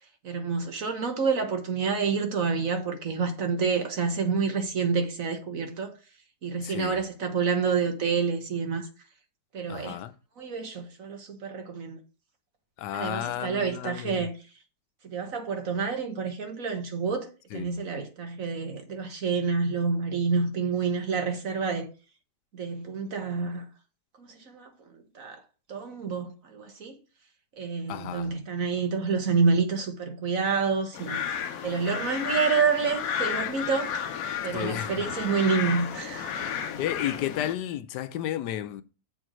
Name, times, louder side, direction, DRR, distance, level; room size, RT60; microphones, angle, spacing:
voice 1, 0.2-5.9 6.4-8.9 9.5-10.0 10.4-12.0 12.9-14.3 15.0-21.9 22.5-23.6 24.2-25.4 25.7-27.0 27.6-31.2 31.6-34.0 34.4-36.3, right 5 dB, 55° right, 1.7 m, -28 dB
voice 2, 6.6-7.0 9.7-10.1 12.8-14.3 17.5-17.8 27.9-28.3 34.5-35.2 36.8-38.8, left 12 dB, 85° left, 1.2 m, -33 dB
sound 1, 30.9-37.5, left 8 dB, 65° left, 1.1 m, -32 dB
6.9 x 4.6 x 6.2 m
omnidirectional pair, 1.7 m